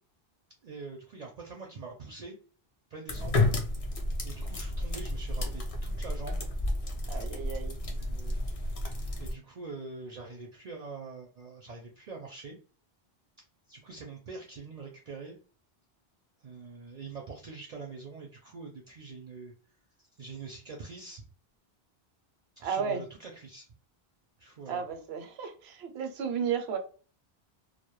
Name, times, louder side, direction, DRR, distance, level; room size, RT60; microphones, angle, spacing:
voice 1, 0.6-2.4 2.9-3.3 4.2-6.5 7.8-8.8 9.2-12.6 13.7-15.4 16.4-19.5 20.0-21.2 22.6-23.7 24.4-24.9, right 4 dB, 55° right, 0.5 m, -44 dB
sound 1, 3.1-9.3, left 2 dB, 45° left, 0.5 m, -31 dB
voice 2, 7.1-7.8 22.6-23.0 24.7-26.8, right 7 dB, 85° right, 0.8 m, -33 dB
2.2 x 2.0 x 3.0 m
omnidirectional pair, 1.0 m